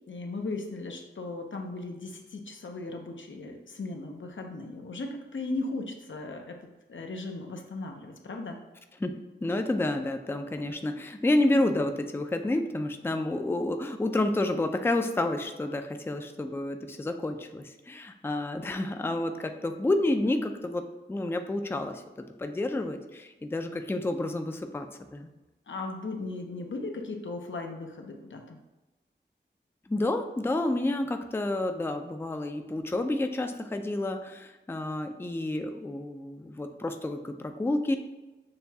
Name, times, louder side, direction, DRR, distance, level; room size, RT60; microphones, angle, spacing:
voice 1, 0.1-8.6 25.7-28.6, left 2 dB, 80° left, 3 dB, 0.6 m, -37 dB
voice 2, 9.4-22.0 22.4-25.3 29.9-37.9, left 2 dB, 10° left, 6 dB, 0.3 m, -29 dB
6.6 x 2.3 x 2.7 m, 1.1 s
wide cardioid pair, 55°, 19 cm